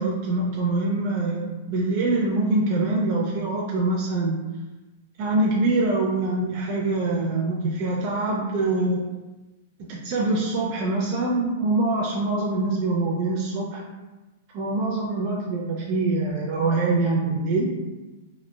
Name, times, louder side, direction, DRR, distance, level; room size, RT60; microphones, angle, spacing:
voice 1, 0.0-4.4 5.2-9.0 9.8-13.8 14.5-17.7, right 2 dB, 45° right, -3 dB, 0.4 m, -24 dB
3.1 x 2.1 x 2.2 m, 1.1 s
hypercardioid pair, 140°, 0 cm